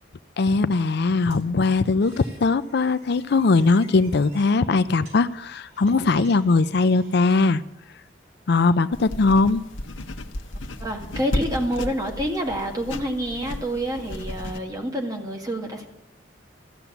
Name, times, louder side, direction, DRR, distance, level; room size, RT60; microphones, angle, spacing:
voice 1, 0.4-7.6 8.5-9.6, left 3 dB, 60° left, 13 dB, 0.5 m, -20 dB
sound 1, 1.3-7.4, right 2 dB, 70° right, 6.0 m, -52 dB
sound 2, 8.9-14.6, left 1 dB, 90° left, 1.1 m, -33 dB
voice 2, 10.8-15.9, equal, 20° right, 2 dB, 2.0 m, -28 dB
14.5 x 7.1 x 9.9 m, 0.84 s
head